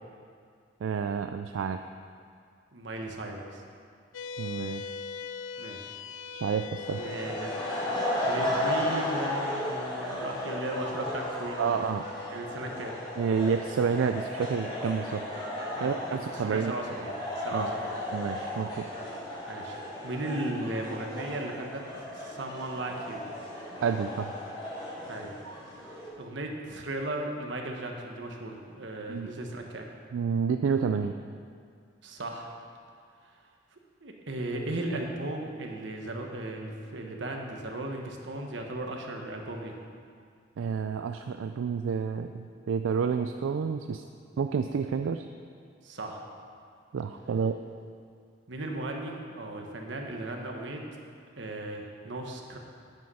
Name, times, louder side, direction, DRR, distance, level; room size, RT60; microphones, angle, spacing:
voice 1, 0.8-1.8 4.4-4.9 6.3-7.1 11.6-12.0 13.2-15.2 15.8-16.7 17.5-17.7 18.1-18.9 23.8-24.3 29.1-29.3 30.1-31.2 40.6-44.0 44.4-45.3 46.9-47.6, right 6 dB, 80° right, 7 dB, 0.4 m, -29 dB
voice 2, 2.7-3.6 5.6-5.9 7.0-7.5 8.2-11.7 12.3-12.9 15.7-17.9 19.5-19.8 20.0-21.8 22.1-23.2 25.1-25.4 26.2-29.8 32.0-32.5 34.0-39.8 45.8-46.2 48.5-50.8 51.4-52.6, right 1 dB, 65° right, 2 dB, 1.2 m, -36 dB
sound 1, 4.1-16.8, left 5 dB, 75° left, 0.4 m, -43 dB
sound 2, 6.7-26.1, left 1 dB, 25° left, 2.3 m, -35 dB
9.2 x 7.7 x 5.6 m, 2.2 s
head